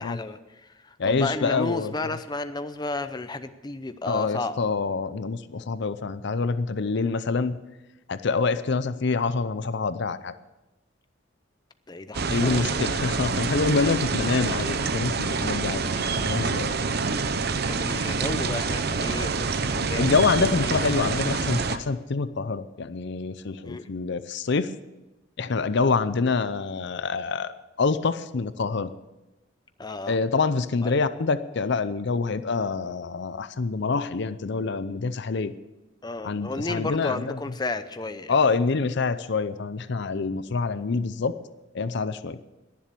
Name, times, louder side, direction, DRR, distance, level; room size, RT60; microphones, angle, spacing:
voice 1, 0.0-4.6 11.9-12.8 13.9-14.0 17.7-21.2 23.6-23.9 29.8-30.2 30.8-30.9 36.0-38.3, left 2 dB, 20° left, 10 dB, 0.6 m, -33 dB
voice 2, 1.0-2.1 4.1-7.6 8.1-10.3 12.3-16.7 20.0-24.7 25.4-28.9 30.1-35.5 36.2-37.4 38.3-41.3 41.7-42.4, left 4 dB, 60° left, 13 dB, 0.6 m, -26 dB
sound 1, 12.1-21.8, right 4 dB, 55° right, 0.8 m, -27 dB
21.0 x 7.4 x 6.8 m, 1.0 s
head